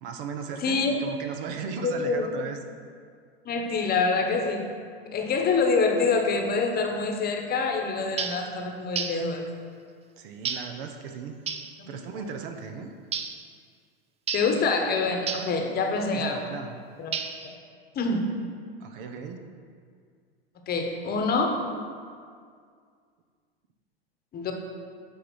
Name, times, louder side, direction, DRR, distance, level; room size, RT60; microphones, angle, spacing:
voice 1, 0.0-2.6 10.2-11.4 11.9-12.9 16.0-16.8 18.8-19.4, right 6 dB, 60° right, 5 dB, 0.9 m, -37 dB
voice 2, 0.6-1.0 1.8-2.4 3.4-4.7 5.1-9.5 11.8-12.0 14.3-16.4 17.0-17.2 17.9-18.2 20.7-21.6 24.3-24.5, left 4 dB, 30° left, 3 dB, 1.1 m, -26 dB
sound 1, 8.2-8.5 9.0-9.3 10.5-10.8 11.5-11.7 13.1-13.4 14.3-14.6 15.3-15.6 17.1-17.5, right 6 dB, 20° right, 0.5 m, -31 dB
9.4 x 3.6 x 6.1 m, 2.1 s
hypercardioid pair, 100°, 31 cm